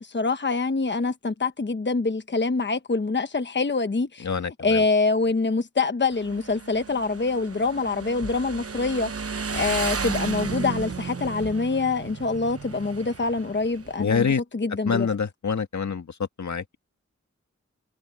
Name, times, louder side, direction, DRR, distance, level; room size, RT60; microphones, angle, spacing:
voice 1, 0.0-4.3 4.6-9.1 9.5-14.3 14.5-15.1, left 3 dB, 40° left, 1.1 m, -25 dB
voice 2, 4.2-4.8 14.0-14.4 14.9-16.8, left 5 dB, 75° left, 1.8 m, -26 dB
Motorcycle, 6.1-14.3, right 5 dB, 55° right, 1.1 m, -34 dB
wide cardioid pair, 65°, 29 cm